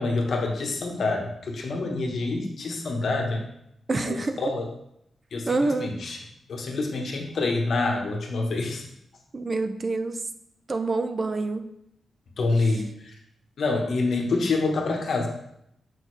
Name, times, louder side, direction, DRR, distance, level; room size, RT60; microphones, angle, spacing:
voice 1, 0.0-3.5 4.1-4.7 5.3-6.2 6.5-8.8 12.4-13.1 13.6-15.3, left 3 dB, 60° left, 1 dB, 1.1 m, -27 dB
voice 2, 3.9-4.4 5.5-5.9 9.3-10.2 10.7-11.7, right 3 dB, 30° right, 8 dB, 0.4 m, -26 dB
6.4 x 4.9 x 3.2 m, 0.77 s
wide cardioid pair, 155°, 0 cm